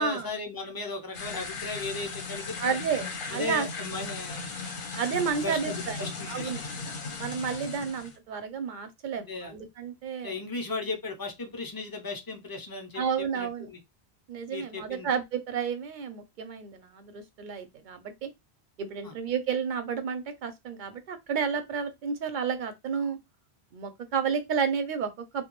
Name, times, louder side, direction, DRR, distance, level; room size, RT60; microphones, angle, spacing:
voice 1, 0.0-2.8 3.3-4.5 5.3-6.5 7.7-7.9 9.3-9.5 10.2-13.0 13.3-13.8 14.5-15.1 19.0-19.1, left 3 dB, 35° left, 0.3 m, -36 dB
sound 1, 1.1-8.2, left 4 dB, 55° left, 0.8 m, -37 dB
voice 2, 2.6-3.7 4.9-6.6 7.2-10.4 12.9-13.7 14.3-18.3 18.8-23.2 23.7-25.5, right 6 dB, 55° right, 0.6 m, -31 dB
2.2 x 2.2 x 3.0 m
omnidirectional pair, 1.1 m